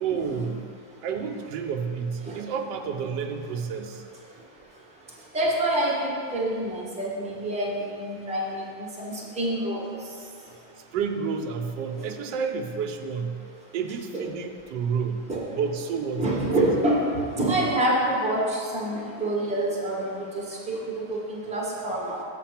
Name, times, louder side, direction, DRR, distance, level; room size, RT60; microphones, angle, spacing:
voice 1, 0.0-0.6 1.0-4.0 10.5-15.2 15.5-16.4, right 6 dB, 75° right, 5 dB, 1.2 m, -30 dB
voice 2, 5.3-9.8 14.1-14.2 15.3-15.4 16.2-20.3 20.7-22.2, right 1 dB, 5° right, -5 dB, 1.1 m, -26 dB
6.6 x 5.9 x 5.7 m, 2.3 s
omnidirectional pair, 2.1 m